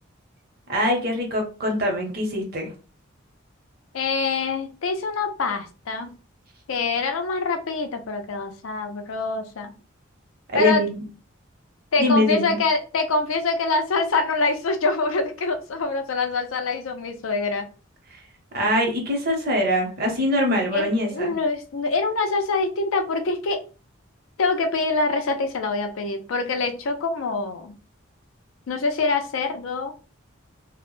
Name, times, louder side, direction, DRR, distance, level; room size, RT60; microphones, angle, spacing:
voice 1, 0.7-2.7 10.5-11.0 12.0-12.6 18.5-21.3, left 1 dB, 50° right, 1 dB, 0.7 m, -23 dB
voice 2, 3.9-6.1 6.7-9.7 10.5-10.8 11.9-17.7 20.7-23.6 24.4-27.7 28.7-29.9, left 3 dB, 90° left, 6 dB, 0.4 m, -25 dB
2.0 x 2.0 x 3.0 m, 0.35 s
head